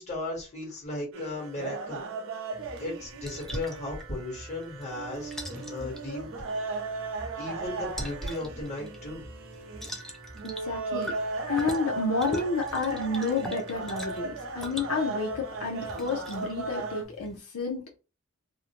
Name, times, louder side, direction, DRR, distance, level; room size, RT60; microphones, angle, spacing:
voice 1, 0.0-2.0 2.8-6.3 7.4-9.3, left 1 dB, 30° left, -3 dB, 1.3 m, -36 dB
sound 1, 1.1-17.0, right 3 dB, 60° right, 0.5 m, -37 dB
sound 2, 2.5-17.4, equal, ahead, 0.4 m, -44 dB
voice 2, 10.4-11.1 11.5-18.0, left 3 dB, 75° left, 1 dB, 0.6 m, -30 dB
2.5 x 2.1 x 2.9 m, 0.31 s
head